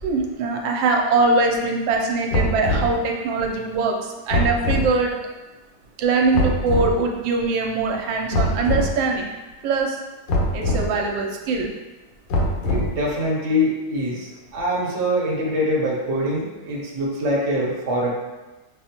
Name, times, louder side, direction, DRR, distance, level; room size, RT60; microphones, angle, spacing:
voice 1, 0.0-5.1 6.0-9.3 9.6-10.0 10.5-11.7, right 3 dB, 85° right, 1 dB, 1.3 m, -22 dB
sound 1, 2.3-3.0 4.3-4.9 6.3-6.9 8.3-8.9 10.3-10.9 12.3-13.0, left 1 dB, 85° left, 1.4 m, -22 dB
voice 2, 12.6-18.1, equal, 50° right, -3 dB, 0.9 m, -24 dB
5.9 x 2.0 x 2.8 m, 1.2 s
omnidirectional pair, 2.0 m